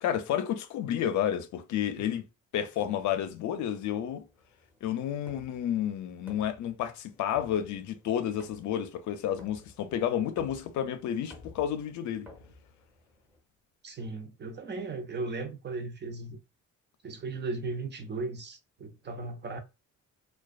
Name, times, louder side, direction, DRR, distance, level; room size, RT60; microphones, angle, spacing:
voice 1, 0.0-2.2 2.5-4.2 4.8-12.3, left 10 dB, 70° left, 0.5 m, -31 dB
sound 1, 2.7-13.4, left 2 dB, 5° right, 0.8 m, -55 dB
voice 2, 13.8-16.4 17.0-19.6, right 3 dB, 35° right, 0.6 m, -36 dB
2.4 x 2.2 x 2.3 m
cardioid pair, 90°, 30 cm